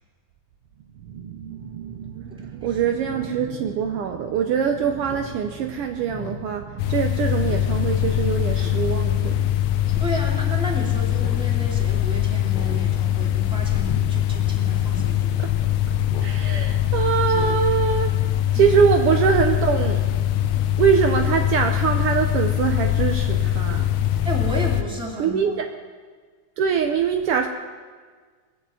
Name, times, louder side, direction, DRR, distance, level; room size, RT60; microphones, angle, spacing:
voice 1, 1.0-9.5 9.9-10.0 15.4-15.5 16.2-18.2 18.5-20.0 20.8-23.9 25.2-25.5 26.6-27.5, right 7 dB, 85° right, 4 dB, 1.2 m, -23 dB
Speech synthesizer, 5.0-5.3 5.6-5.7 6.1-6.4 6.8-6.9 7.5-7.7 8.0-8.1 8.5-8.9 9.9-10.2 11.1-11.5 11.8-11.9 12.4-12.8 13.1-13.3 13.8-14.0 14.4-14.5 14.9-15.1 16.1-16.3 16.7-16.8 17.2-17.6 17.9-18.0, left 6 dB, 55° left, 1.2 m, -36 dB
sound 1, 6.8-24.8, left 11 dB, 80° left, 2.1 m, -22 dB
voice 2, 10.0-15.4 18.5-18.6 24.2-25.6, equal, ahead, -3 dB, 2.2 m, -32 dB
20.0 x 7.9 x 7.7 m, 1.5 s
omnidirectional pair, 3.6 m